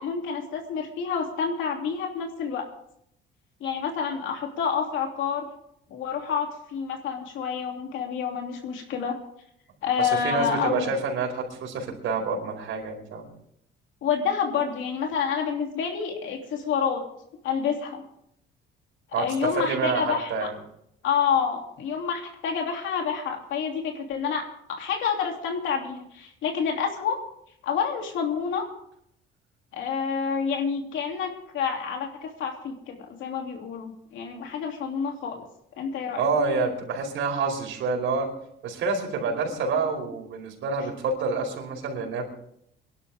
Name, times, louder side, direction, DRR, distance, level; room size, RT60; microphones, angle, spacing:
voice 1, 0.0-2.7 3.6-5.5 5.9-9.1 9.8-10.9 14.0-17.0 17.4-18.0 19.2-20.5 21.0-27.2 27.6-28.7 29.7-35.4 35.8-36.3, left 6 dB, 70° left, 2 dB, 3.0 m, -28 dB
voice 2, 10.0-13.3 19.1-20.5 36.1-38.3 38.6-42.3, right 4 dB, 70° right, 1 dB, 4.9 m, -28 dB
24.0 x 12.0 x 3.6 m, 0.73 s
cardioid pair, 150°, 21 cm